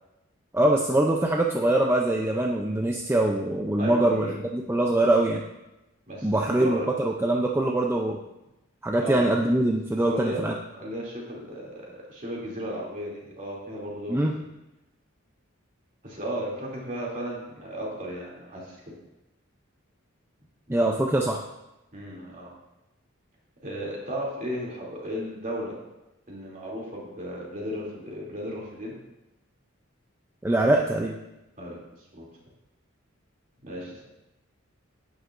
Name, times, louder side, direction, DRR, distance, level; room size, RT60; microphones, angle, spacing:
voice 1, 0.5-4.3 4.5-5.4 6.2-8.2 8.8-10.5 14.1-14.3 20.7-21.4 30.4-31.2, right 1 dB, 10° right, 0 dB, 0.5 m, -23 dB
voice 2, 3.8-4.4 6.1-6.9 9.0-9.3 10.0-10.5 10.7-14.5 16.0-18.8 21.9-22.5 23.6-25.8 26.3-29.0 31.6-31.8 32.1-32.3 33.6-34.1, equal, 40° right, -4 dB, 2.8 m, -35 dB
11.0 x 9.4 x 2.6 m, 0.97 s
head